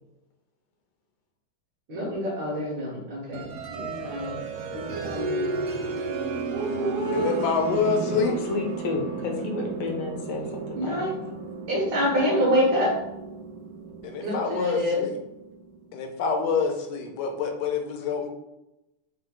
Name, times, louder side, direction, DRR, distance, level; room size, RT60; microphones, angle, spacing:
voice 1, 1.9-3.5 3.7-4.4 4.7-5.5 6.5-7.4 10.8-11.1 11.7-13.0 14.2-15.0, equal, 65° right, -6 dB, 1.9 m, -26 dB
sound 1, 3.3-15.8, right 4 dB, 85° right, 1.5 m, -33 dB
voice 2, 7.1-8.3 14.0-15.2 15.9-18.3, left 5 dB, 70° left, 4 dB, 1.0 m, -27 dB
voice 3, 8.1-11.3, left 3 dB, 85° left, 2 dB, 1.7 m, -31 dB
4.7 x 2.6 x 3.7 m, 0.93 s
omnidirectional pair, 2.3 m